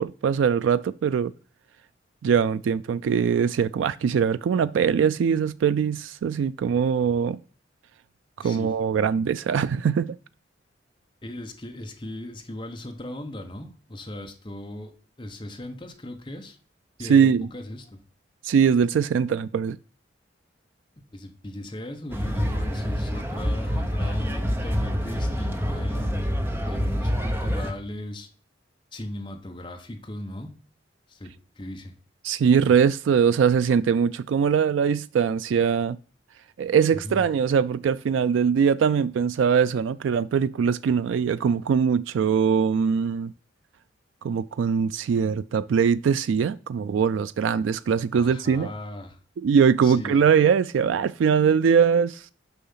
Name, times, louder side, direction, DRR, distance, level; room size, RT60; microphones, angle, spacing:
voice 1, 0.0-1.3 2.2-7.4 8.4-10.2 17.0-17.5 18.4-19.8 32.2-36.0 36.6-43.3 44.2-48.7 49.4-52.3, right 7 dB, 80° right, 0.3 m, -22 dB
voice 2, 8.4-8.7 11.2-16.6 17.0-18.0 21.1-26.3 26.7-28.3 28.9-30.5 31.1-32.0 36.9-37.3 48.1-49.2 49.8-50.2, left 1 dB, 25° left, 0.9 m, -37 dB
sound 1, 22.1-27.7, equal, 10° right, 0.8 m, -26 dB
7.0 x 5.7 x 5.6 m
head